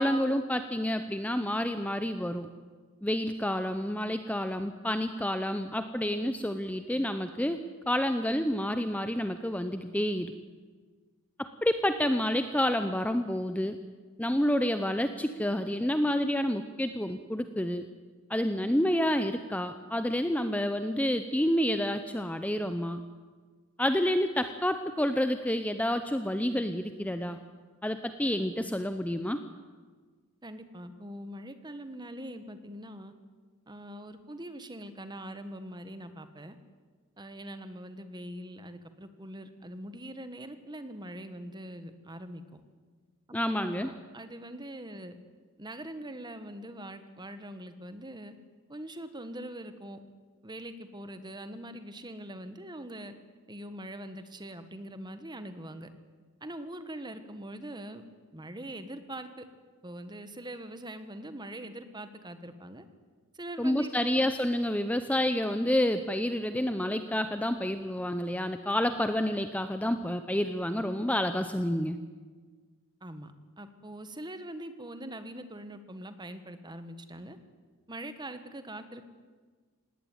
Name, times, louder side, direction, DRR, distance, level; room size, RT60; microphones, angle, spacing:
voice 1, 0.0-2.5 3.0-7.6 7.9-10.3 11.4-13.8 14.2-17.8 18.3-23.0 23.8-27.4 27.8-29.4 43.3-43.9 63.6-72.0, left 1 dB, 5° left, 9 dB, 0.7 m, -29 dB
voice 2, 30.4-33.1 33.7-36.6 37.2-42.6 43.3-45.1 45.6-48.3 48.7-50.0 50.4-53.1 53.5-55.9 56.4-58.0 58.3-59.5 59.8-62.8 63.3-64.2 73.0-73.3 73.6-77.4 77.9-79.0, right 1 dB, 20° right, 10 dB, 1.4 m, -43 dB
18.5 x 18.0 x 9.6 m, 1.5 s
head